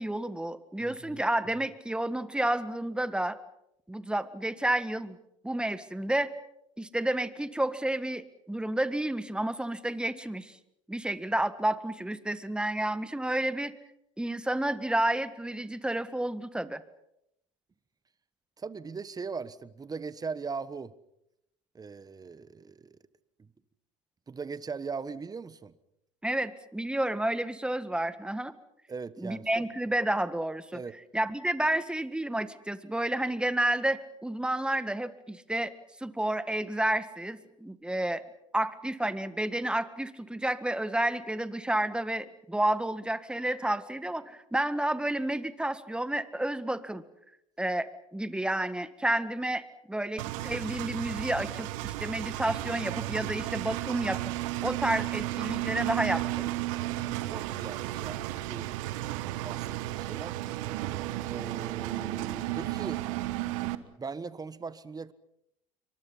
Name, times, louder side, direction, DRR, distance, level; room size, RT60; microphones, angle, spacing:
voice 1, 0.0-3.4 3.9-5.2 5.4-6.3 6.8-10.6 10.9-13.7 14.2-16.8 26.2-28.5 29.2-30.8 31.1-35.7 36.0-38.2 38.5-47.0 47.6-54.2 54.6-56.5, right 1 dB, 5° right, 13 dB, 1.7 m, -30 dB
voice 2, 0.8-1.2 18.6-20.9 21.7-23.0 23.4-23.5 24.3-25.7 28.9-29.7 30.7-30.9 56.7-58.7 59.4-60.3 61.3-63.0 64.0-65.1, right 5 dB, 20° right, 16 dB, 1.3 m, -40 dB
Engine, 50.2-63.8, right 16 dB, 75° right, 1.3 m, -33 dB
28.5 x 24.5 x 5.6 m, 0.80 s
hypercardioid pair, 75°, 17 cm